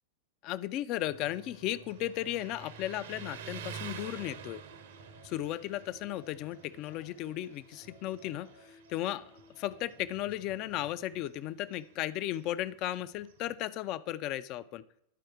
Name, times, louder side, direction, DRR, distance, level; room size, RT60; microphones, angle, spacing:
voice 1, 0.4-4.6 5.2-9.2 9.5-14.8, left 14 dB, 40° left, 17 dB, 0.3 m, -35 dB
Motorcycle, 1.0-13.7, right 7 dB, 60° right, 0.7 m, -49 dB
sound 1, 4.7-10.1, left 3 dB, 80° left, 2.6 m, -59 dB
11.0 x 4.8 x 4.3 m, 0.76 s
figure-of-eight pair, 90°, 0 cm